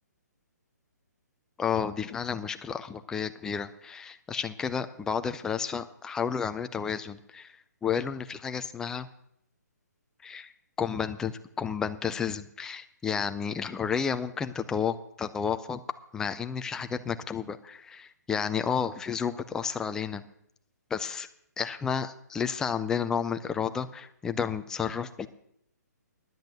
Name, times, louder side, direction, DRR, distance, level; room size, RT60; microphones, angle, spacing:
voice 1, 1.6-9.1 10.2-10.5 10.8-15.8 16.1-20.2 20.9-21.3 21.6-25.3, left 7 dB, 5° left, 10 dB, 0.4 m, -31 dB
10.5 x 8.0 x 7.7 m, 0.71 s
hypercardioid pair, 155°, 10 cm